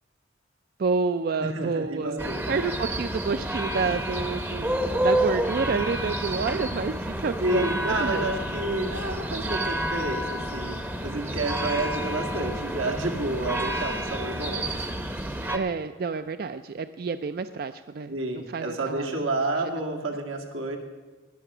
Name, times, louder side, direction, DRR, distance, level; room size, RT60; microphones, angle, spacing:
voice 1, 0.8-8.3 15.5-18.1 18.5-19.2, right 4 dB, 50° right, 11 dB, 0.3 m, -29 dB
voice 2, 1.4-2.4 7.3-14.7 18.1-20.8, right 2 dB, 85° right, 2 dB, 1.9 m, -30 dB
sound 1, 2.2-15.6, right 1 dB, 10° right, 0.7 m, -29 dB
19.0 x 6.7 x 6.0 m, 1.2 s
head